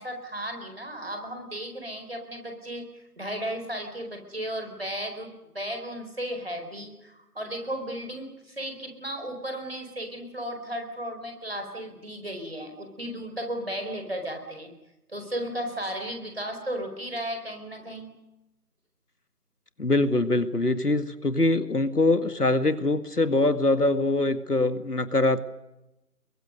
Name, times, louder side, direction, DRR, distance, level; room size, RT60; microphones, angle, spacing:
voice 1, 0.0-2.9 3.2-14.7 15.1-18.1, right 1 dB, 40° right, 4 dB, 4.7 m, -35 dB
voice 2, 19.8-25.5, left 2 dB, 80° left, 11 dB, 2.1 m, -23 dB
29.0 x 23.0 x 6.6 m, 0.92 s
figure-of-eight pair, 180°, 46 cm